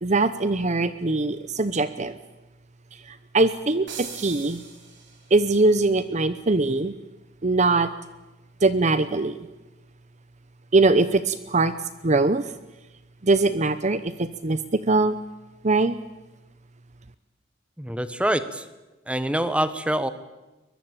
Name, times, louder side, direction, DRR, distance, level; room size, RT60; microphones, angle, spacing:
voice 1, 0.0-2.2 2.9-4.6 5.3-6.9 7.4-7.9 8.6-9.5 10.7-11.7 12.0-12.5 13.2-15.2 15.6-16.0, right 3 dB, 35° right, 13 dB, 0.8 m, -22 dB
sound 1, 3.9-5.5, right 6 dB, 60° right, 5.2 m, -40 dB
voice 2, 17.8-18.7 19.1-20.1, right 1 dB, 5° right, 12 dB, 1.3 m, -25 dB
23.0 x 21.5 x 8.9 m, 1.1 s
head